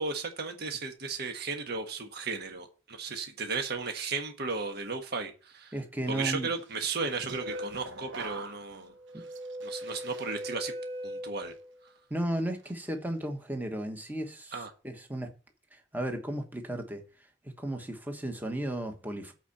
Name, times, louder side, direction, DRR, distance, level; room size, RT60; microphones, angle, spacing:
voice 1, 0.0-5.7 6.1-9.2 9.6-10.7 11.0-11.5 14.5-14.7, right 4 dB, 55° right, 1.4 m, -35 dB
voice 2, 5.7-6.5 9.1-9.2 12.1-14.5 14.8-15.3 15.7-17.0 17.4-19.3, right 1 dB, 10° right, 1.2 m, -34 dB
sound 1, 6.8-11.9 12.3-12.7, equal, 70° right, 1.2 m, -40 dB
8.2 x 4.4 x 6.9 m
head